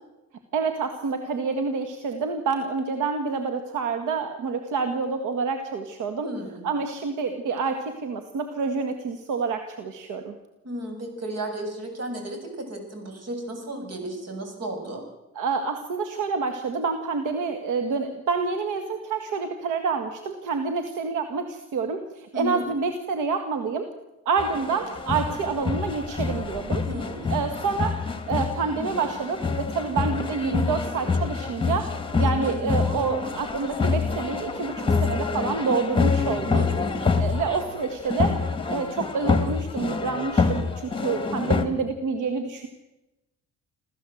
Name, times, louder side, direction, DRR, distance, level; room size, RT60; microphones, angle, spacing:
voice 1, 0.5-6.3 6.6-10.3 15.4-23.9 24.3-26.8 27.3-28.0 28.3-31.9 32.1-36.6 37.2-38.4 38.7-42.7, right 5 dB, 85° right, 6 dB, 2.0 m, -28 dB
voice 2, 6.2-6.7 10.6-15.0 22.3-22.7 26.9-27.3 32.2-32.6 36.5-37.0, right 1 dB, 55° right, 5 dB, 7.6 m, -34 dB
sound 1, 24.4-41.7, left 4 dB, 15° left, 2.5 m, -26 dB
27.0 x 14.5 x 8.0 m, 0.98 s
cardioid pair, 90°, 30 cm